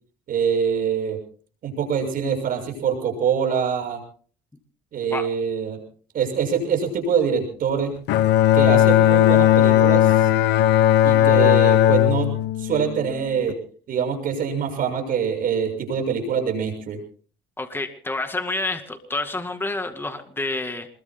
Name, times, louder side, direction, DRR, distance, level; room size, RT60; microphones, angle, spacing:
voice 1, 0.3-1.2 1.6-4.0 4.9-5.8 6.1-7.9 8.5-10.3 11.0-12.3 12.6-13.6 13.9-17.0, right 6 dB, 55° right, 4 dB, 6.5 m, -24 dB
Bowed string instrument, 8.1-13.5, left 12 dB, 80° left, 0.8 m, -17 dB
voice 2, 17.6-20.9, left 2 dB, 15° left, 6 dB, 2.2 m, -28 dB
27.5 x 21.5 x 2.2 m, 0.43 s
cardioid pair, 110°, 17 cm